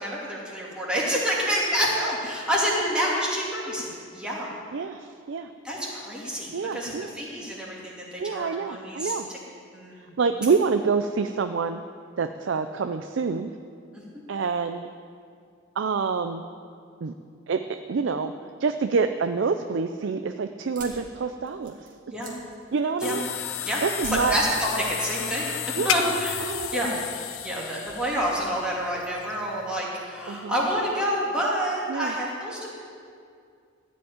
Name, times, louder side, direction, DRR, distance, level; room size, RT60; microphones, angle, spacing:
voice 1, 0.0-3.9 4.1-4.5 5.6-9.4 9.7-10.1 13.9-14.0 22.1-22.3 23.0-23.2 23.6-23.8 24.1-27.0 27.4-32.7, equal, 5° right, -6 dB, 2.5 m, -28 dB
voice 2, 4.7-5.5 6.5-7.1 8.2-9.3 10.2-11.8 12.2-13.5 14.3-14.9 15.8-16.4 17.0-17.1 17.5-18.3 18.6-21.9 22.7-23.2 23.8-24.3 25.8-26.1 26.4-26.8 30.3-30.5 31.9-32.1, right 5 dB, 65° right, 8 dB, 0.4 m, -27 dB
sound 1, 20.6-23.3 24.0-25.5 25.8-26.4, right 2 dB, 45° right, 2.2 m, -44 dB
sound 2, 23.0-29.8, left 10 dB, 90° left, 0.6 m, -33 dB
14.0 x 5.2 x 9.4 m, 2.3 s
head